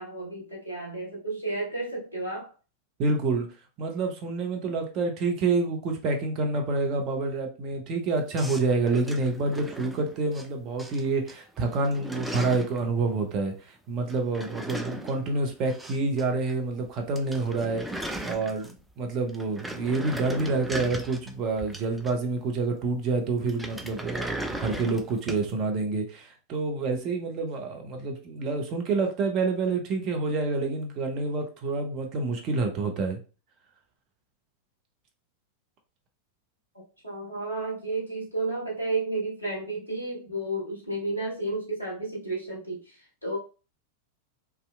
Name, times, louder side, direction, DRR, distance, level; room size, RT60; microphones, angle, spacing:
voice 1, 0.0-2.5 36.7-43.4, right 2 dB, 90° right, -4 dB, 1.1 m, -32 dB
voice 2, 3.0-3.5 3.8-17.8 18.2-18.7 19.0-33.2, right 3 dB, 35° right, 4 dB, 0.6 m, -28 dB
sound 1, 8.4-10.5 10.8-11.3 11.6-12.8 14.1-16.2 16.5-16.6 16.9-17.0 17.1-18.9 19.3-22.4 23.5-25.5, right 1 dB, 5° right, 0.3 m, -37 dB
2.7 x 2.3 x 2.2 m, 0.34 s
figure-of-eight pair, 90°, 0 cm